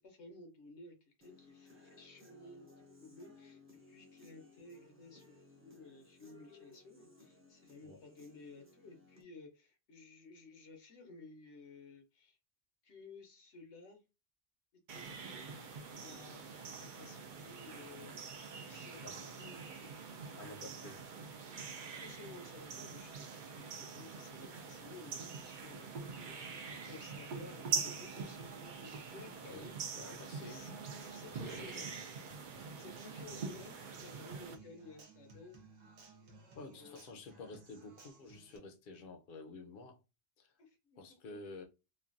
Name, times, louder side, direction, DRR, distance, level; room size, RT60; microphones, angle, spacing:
voice 1, 0.0-3.6 3.9-12.4 12.8-14.0 14.9-15.5 16.0-20.0 22.0-28.4 28.8-29.7 30.5-30.7 31.1-31.9 32.8-35.6 36.7-37.0 40.6-41.0 41.3-41.4, left 3 dB, 85° left, 1.2 m, -55 dB
Human voice / Guitar, 1.2-9.2, left 3 dB, 15° right, 0.5 m, -61 dB
sound 1, 14.9-34.5, right 5 dB, 55° right, 0.6 m, -44 dB
voice 2, 20.4-21.0 29.4-29.7 29.9-30.7 31.5-31.9 36.6-40.0 40.4-40.6 41.0-41.6, left 3 dB, 55° left, 0.7 m, -50 dB
Human voice / Acoustic guitar, 30.6-38.6, right 3 dB, 85° right, 1.1 m, -60 dB
3.1 x 2.3 x 2.5 m
omnidirectional pair, 1.1 m